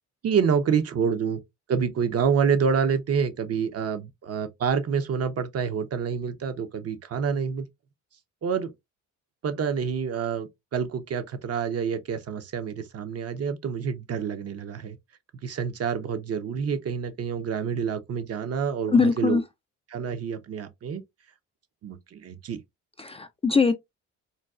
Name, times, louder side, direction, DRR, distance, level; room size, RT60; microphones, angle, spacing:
voice 1, 0.2-1.4 1.7-7.7 8.4-8.7 9.4-15.0 15.4-19.4 19.9-21.0 21.8-22.6, right 6 dB, 55° right, 0.7 m, -27 dB
voice 2, 18.9-19.4 23.0-23.7, left 4 dB, 20° left, 0.3 m, -21 dB
3.9 x 2.3 x 2.3 m
cardioid pair, 90°, 30 cm